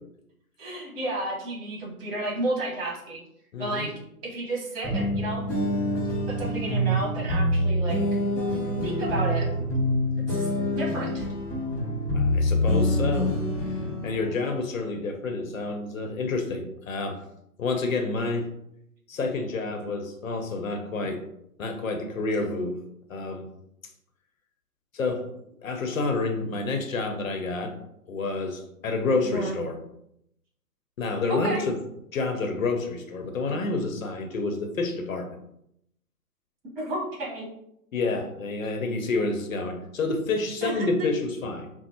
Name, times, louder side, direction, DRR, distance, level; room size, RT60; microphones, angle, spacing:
voice 1, 0.6-3.2 3.6-3.9 4.2-5.4 6.3-8.0 8.8-9.5 10.3-11.2 29.2-29.6 31.3-31.7 36.8-37.5 40.6-41.1, right 1 dB, 40° right, -3 dB, 1.4 m, -31 dB
voice 2, 3.5-3.9 12.1-13.3 13.6-17.2 17.6-18.5 19.1-21.2 21.6-22.8 23.1-23.5 24.9-25.3 25.6-27.7 28.1-29.8 31.0-31.8 32.1-35.3 37.9-41.7, left 3 dB, 60° left, 5 dB, 0.7 m, -29 dB
sound 1, 4.8-14.3, equal, 5° left, 0.8 m, -26 dB
5.0 x 2.0 x 2.9 m, 0.77 s
figure-of-eight pair, 130°, 46 cm